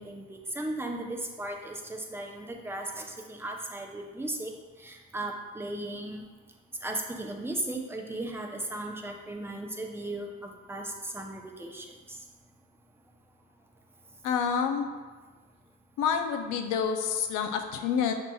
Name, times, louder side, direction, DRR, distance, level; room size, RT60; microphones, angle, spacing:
voice 1, 0.0-4.5 4.8-6.2 6.8-12.2, right 1 dB, 10° right, 1 dB, 0.5 m, -36 dB
voice 2, 14.2-14.9 16.0-18.1, left 7 dB, 85° left, 5 dB, 0.5 m, -28 dB
6.5 x 2.9 x 2.3 m, 1.3 s
cardioid pair, 90°, 30 cm